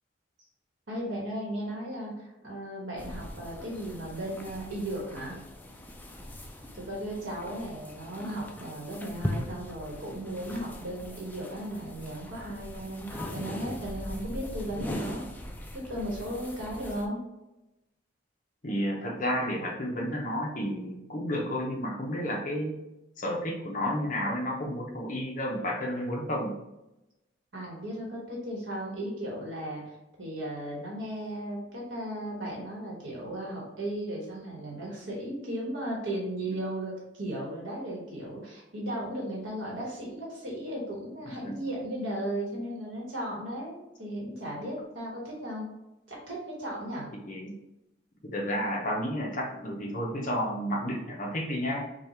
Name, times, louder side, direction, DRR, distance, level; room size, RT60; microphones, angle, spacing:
voice 1, 0.9-5.4 6.7-15.2 15.9-17.2 27.5-29.8 30.2-45.7 46.1-47.1, right 1 dB, 85° right, -3 dB, 1.3 m, -36 dB
sound 1, 3.0-17.1, left 1 dB, 10° left, 0.4 m, -40 dB
voice 2, 18.6-22.8 23.2-26.5 36.4-36.5 41.2-41.6 47.3-47.5 48.3-51.9, equal, 40° left, -1 dB, 0.8 m, -31 dB
5.1 x 2.4 x 4.3 m, 0.94 s
head